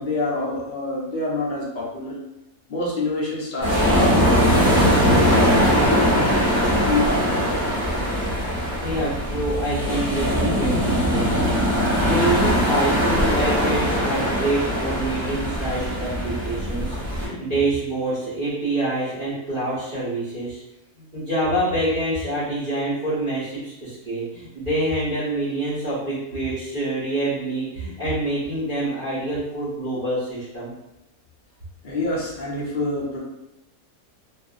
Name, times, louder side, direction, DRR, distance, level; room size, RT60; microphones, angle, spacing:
voice 1, 0.0-2.2 2.7-6.1 6.5-7.8 31.8-33.2, left 2 dB, 65° left, -5 dB, 0.4 m, -27 dB
sound 1, 3.6-17.3, equal, 15° right, 1.0 m, -21 dB
voice 2, 8.8-11.5 11.8-20.6 21.0-30.7, right 1 dB, 40° right, -10 dB, 1.0 m, -26 dB
2.5 x 2.5 x 2.4 m, 0.90 s
omnidirectional pair, 1.6 m